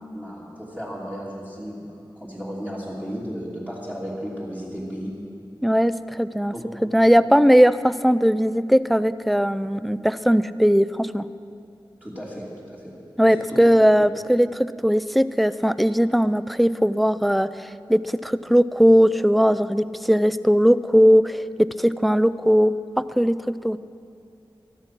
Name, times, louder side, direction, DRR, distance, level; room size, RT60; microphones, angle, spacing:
voice 1, 0.1-1.8 2.2-5.1 6.5-6.6 12.0-12.9 13.5-13.6, equal, 15° right, -7 dB, 2.9 m, -34 dB
voice 2, 5.6-6.5 6.8-11.3 13.2-23.8, equal, ahead, 15 dB, 0.4 m, -19 dB
14.5 x 13.0 x 6.0 m, 2.5 s
wide cardioid pair, 75°, 9 cm